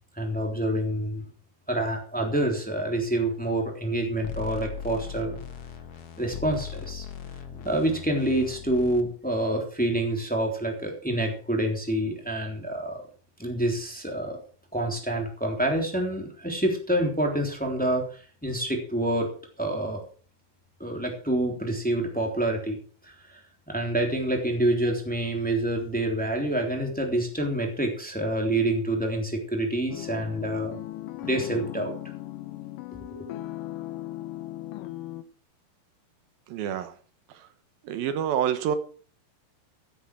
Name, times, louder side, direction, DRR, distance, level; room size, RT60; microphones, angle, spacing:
voice 1, 0.2-1.2 1.7-5.4 6.2-7.1 7.5-13.0 13.4-14.4 14.7-19.3 19.6-20.0 20.8-22.8 23.0-23.4 23.7-30.8 31.2-31.9 33.1-33.3, right 1 dB, 5° left, 2.8 m, -27 dB
sound 1, 4.2-9.0, left 8 dB, 55° left, 1.9 m, -39 dB
sound 2, 29.9-35.2, left 15 dB, 75° left, 2.5 m, -37 dB
voice 2, 36.5-36.9 37.9-38.8, right 9 dB, 85° right, 3.1 m, -27 dB
16.0 x 8.7 x 6.2 m
omnidirectional pair, 4.0 m